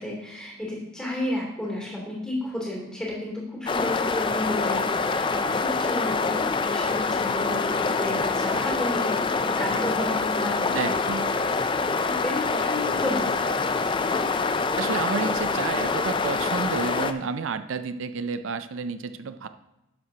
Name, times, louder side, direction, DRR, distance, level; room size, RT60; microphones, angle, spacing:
voice 1, 0.0-10.8 11.6-13.8, left 1 dB, 5° left, -4 dB, 3.0 m, -32 dB
sound 1, 3.7-17.1, left 4 dB, 25° left, 0.4 m, -25 dB
voice 2, 10.7-11.3 14.8-19.5, right 5 dB, 70° right, 11 dB, 0.4 m, -30 dB
11.5 x 7.7 x 2.8 m, 0.93 s
head